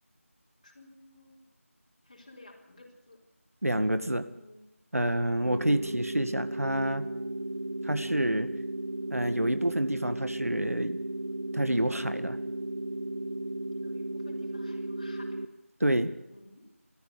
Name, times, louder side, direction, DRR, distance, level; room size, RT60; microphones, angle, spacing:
voice 1, 0.6-1.4 2.0-3.2 4.2-4.7 13.8-15.4 16.3-16.7, left 2 dB, 25° left, -1 dB, 4.0 m, -52 dB
voice 2, 3.6-4.3 4.9-7.1 7.8-8.5 9.1-11.0 11.5-12.4 15.8-16.1, right 1 dB, 80° right, 11 dB, 2.0 m, -28 dB
sound 1, 5.4-15.5, right 1 dB, 50° right, 1.3 m, -35 dB
28.5 x 14.0 x 7.0 m, 0.98 s
figure-of-eight pair, 175°, 8 cm